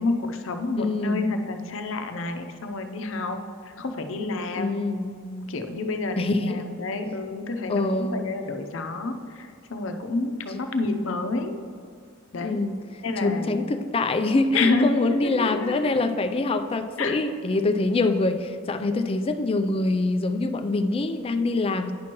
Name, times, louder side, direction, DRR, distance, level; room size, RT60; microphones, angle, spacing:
voice 1, 0.0-3.4 3.6-11.6 12.3-12.6 13.0-13.7 14.5-16.0 17.0-17.2, left 3 dB, 70° left, 6 dB, 0.6 m, -29 dB
voice 2, 0.8-1.3 4.6-5.1 6.2-6.7 7.7-8.2 12.4-12.8 13.2-21.9, left 2 dB, 30° left, 8 dB, 0.3 m, -25 dB
9.4 x 6.1 x 3.0 m, 2.2 s
head